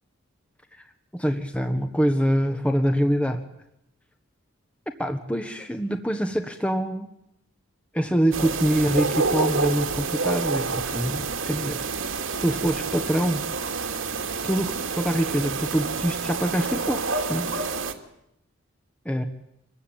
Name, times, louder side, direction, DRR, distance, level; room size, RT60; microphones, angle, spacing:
voice 1, 1.1-3.4 5.0-7.1 7.9-11.8 12.4-13.4 14.4-17.5 19.0-19.2, equal, 5° left, 6 dB, 1.5 m, -25 dB
sound 1, 8.3-17.9, right 4 dB, 75° right, 2.6 m, -28 dB
27.0 x 22.0 x 9.2 m, 0.80 s
head